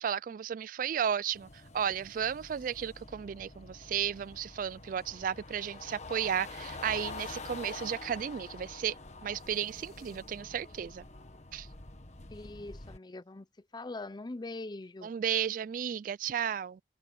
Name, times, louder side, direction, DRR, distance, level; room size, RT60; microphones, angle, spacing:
voice 1, 0.0-1.5 1.7-8.9 9.2-11.0 11.5-11.7 15.0-16.8, right 8 dB, 50° right, 0.3 m, -33 dB
sound 1, 1.3-13.0, left 3 dB, 40° left, 1.5 m, -46 dB
voice 2, 12.3-13.5 13.7-15.1, left 2 dB, 25° left, 0.5 m, -42 dB
open air
head